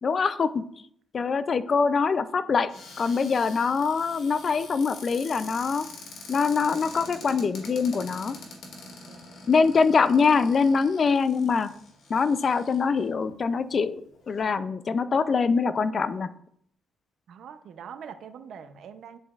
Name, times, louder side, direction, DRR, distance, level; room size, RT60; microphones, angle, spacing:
voice 1, 0.0-0.6 1.1-2.7 3.0-5.9 6.3-8.4 9.5-11.7 12.1-16.3, left 5 dB, 45° left, 14 dB, 0.4 m, -24 dB
Cupboard open or close, 2.7-13.1 13.7-13.8 14.1-14.4, left 3 dB, 70° left, 2.1 m, -45 dB
voice 2, 9.1-9.4 17.3-19.2, right 7 dB, 70° right, 10 dB, 0.6 m, -43 dB
9.9 x 5.0 x 2.4 m, 0.67 s
cardioid pair, 90°, 0 cm